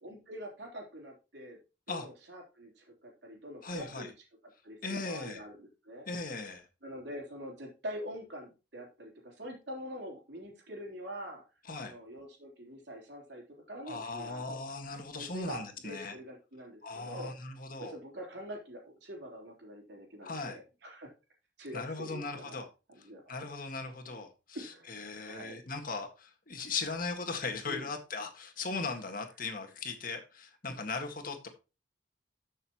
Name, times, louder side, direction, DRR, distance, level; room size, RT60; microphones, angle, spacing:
voice 1, 0.0-1.6 1.9-4.1 4.6-6.1 6.8-11.4 11.8-14.6 15.1-17.5 17.8-21.1 21.6-22.6 23.0-23.4 24.5-25.6 27.7-27.9, equal, 70° right, 3.7 m, -45 dB
voice 2, 3.6-4.1 4.8-5.4 6.1-6.7 11.7-11.9 13.9-16.2 16.8-18.0 20.2-20.6 21.7-22.7 23.3-24.3 24.6-31.5, left 3 dB, 50° left, 1.7 m, -38 dB
13.5 x 6.6 x 3.0 m
head